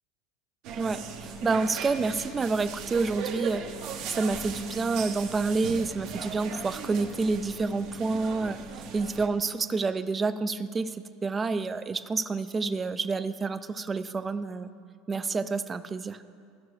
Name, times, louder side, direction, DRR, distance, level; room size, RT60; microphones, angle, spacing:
sound 1, 0.6-9.3, right 6 dB, 60° right, 0.9 m, -38 dB
voice 1, 0.8-3.6 4.1-8.6 8.9-14.7 15.1-16.2, right 4 dB, 20° right, 11 dB, 0.3 m, -28 dB
15.0 x 5.8 x 3.2 m, 2.2 s
supercardioid pair, 125°, 0 cm